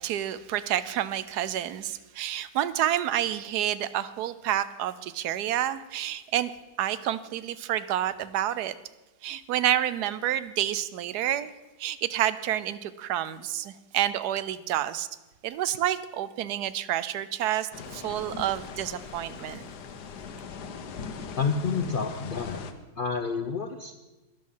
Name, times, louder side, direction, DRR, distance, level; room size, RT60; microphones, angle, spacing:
voice 1, 0.0-6.5 6.8-8.7 9.2-11.5 11.8-15.1 15.4-19.6, right 12 dB, 85° right, 15 dB, 1.2 m, -29 dB
sound 1, 17.7-22.7, left 5 dB, 80° left, 1.5 m, -40 dB
voice 2, 21.4-22.6 23.0-24.0, left 5 dB, 60° left, 6 dB, 0.5 m, -29 dB
12.0 x 10.5 x 5.6 m, 1.1 s
omnidirectional pair, 1.7 m